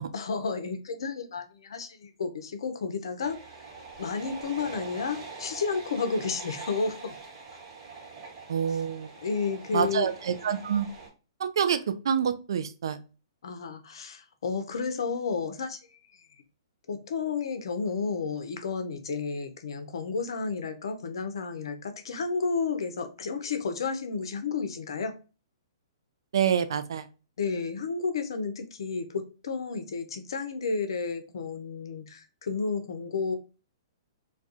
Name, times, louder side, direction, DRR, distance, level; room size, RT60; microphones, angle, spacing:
voice 1, 0.1-3.4 4.0-7.1 8.7-8.8 9.2-10.1 13.4-15.8 16.9-25.1 27.4-33.4, left 5 dB, 65° left, 8 dB, 0.5 m, -32 dB
sound 1, 3.2-11.1, right 4 dB, 45° right, 1.2 m, -44 dB
voice 2, 8.5-9.1 9.7-10.9 11.4-13.0 26.3-27.0, right 8 dB, 65° right, 10 dB, 0.3 m, -27 dB
2.3 x 2.3 x 2.6 m, 0.32 s
hypercardioid pair, 125°, 3 cm